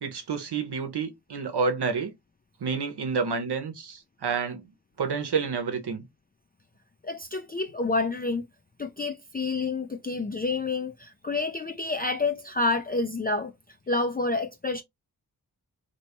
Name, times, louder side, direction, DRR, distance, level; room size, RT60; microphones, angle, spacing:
voice 1, 0.0-2.1 2.6-4.6 5.0-6.0, right 5 dB, 80° right, 0.9 m, -29 dB
voice 2, 7.0-8.4 8.8-13.5 13.9-14.8, left 3 dB, 25° left, 0.4 m, -28 dB
3.2 x 2.9 x 2.9 m
wide cardioid pair, 75°, 39 cm